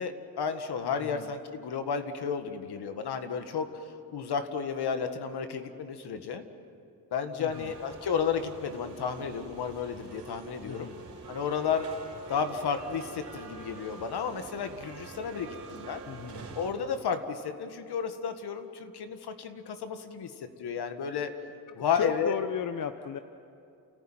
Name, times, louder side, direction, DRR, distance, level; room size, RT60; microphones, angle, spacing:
voice 1, 0.0-6.4 7.1-10.9 11.3-11.9 12.3-16.0 16.5-21.3 21.8-22.4, left 6 dB, 65° left, 8 dB, 1.8 m, -32 dB
voice 2, 7.4-7.7 10.6-11.0 16.1-16.5 21.9-23.2, left 7 dB, 50° left, 9 dB, 0.9 m, -35 dB
sound 1, 7.5-16.7, right 4 dB, 60° right, 4.3 m, -46 dB
30.0 x 14.5 x 9.1 m, 2.6 s
cardioid pair, 100°, 42 cm